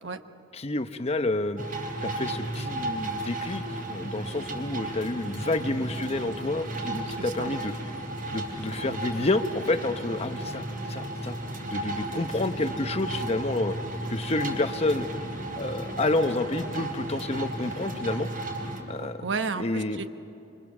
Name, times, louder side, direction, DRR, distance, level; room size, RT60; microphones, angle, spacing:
voice 1, 0.5-1.6 2.0-3.6 3.9-7.7 8.3-11.3 11.7-13.7 14.1-15.1 15.6-18.3 18.9-19.2 19.6-20.0, left 2 dB, 35° left, 9 dB, 0.9 m, -29 dB
sound 1, 1.6-18.8, right 1 dB, 50° right, 5.0 m, -34 dB
voice 2, 7.1-7.5 19.0-20.1, right 4 dB, 75° right, 9 dB, 1.1 m, -33 dB
27.0 x 26.0 x 7.3 m, 2.9 s
head